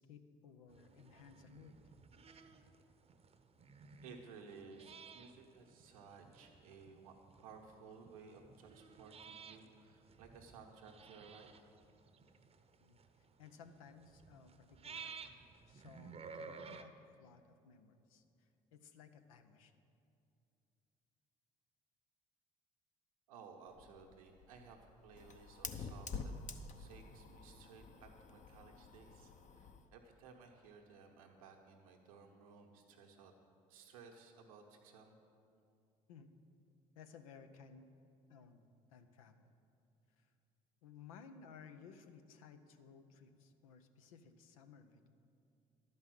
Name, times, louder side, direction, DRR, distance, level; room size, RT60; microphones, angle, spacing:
voice 1, 0.0-1.9 12.8-15.3 15.7-19.8 36.1-36.3 37.0-37.9 38.3-38.6 38.9-39.5 40.2-40.3 40.8-45.1, left 6 dB, 90° left, 8 dB, 0.6 m, -59 dB
sound 1, 0.7-16.8, right 5 dB, 35° right, 0.7 m, -55 dB
voice 2, 4.0-11.5 23.3-26.3 26.8-33.3 33.7-35.2, right 5 dB, 90° right, 2 dB, 1.1 m, -57 dB
Fire, 23.7-29.9, left 5 dB, 45° left, 0.8 m, -49 dB
11.5 x 5.4 x 7.7 m, 2.6 s
hypercardioid pair, 60°, 17 cm